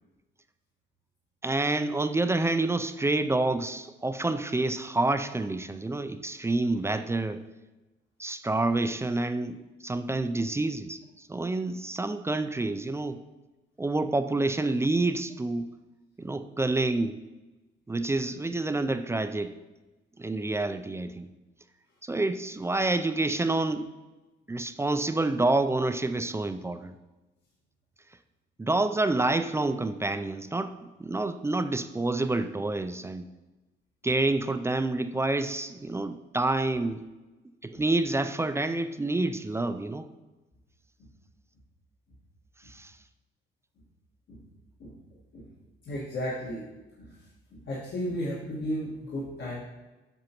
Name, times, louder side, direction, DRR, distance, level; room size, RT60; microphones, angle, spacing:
voice 1, 1.4-7.4 8.2-13.2 13.8-15.7 16.2-17.2 17.9-19.6 20.2-21.3 22.0-23.9 24.5-26.9 28.6-33.3 34.0-37.0 37.6-40.1 42.7-42.9, right 2 dB, 15° right, 9 dB, 0.4 m, -28 dB
voice 2, 45.8-46.7 47.0-47.2 47.5-49.6, equal, 65° left, -7 dB, 1.7 m, -34 dB
7.7 x 6.8 x 3.0 m, 1.1 s
cardioid pair, 90°, 20 cm